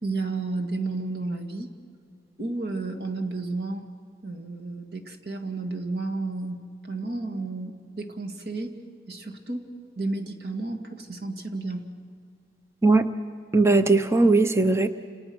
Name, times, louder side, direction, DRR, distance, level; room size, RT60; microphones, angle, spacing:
voice 1, 0.0-1.7 2.4-3.9 4.2-8.7 9.1-9.7 10.0-11.9, right 3 dB, 60° right, 3 dB, 2.2 m, -32 dB
voice 2, 13.5-14.9, right 3 dB, 15° right, 10 dB, 0.7 m, -19 dB
29.5 x 28.5 x 6.2 m, 2.3 s
head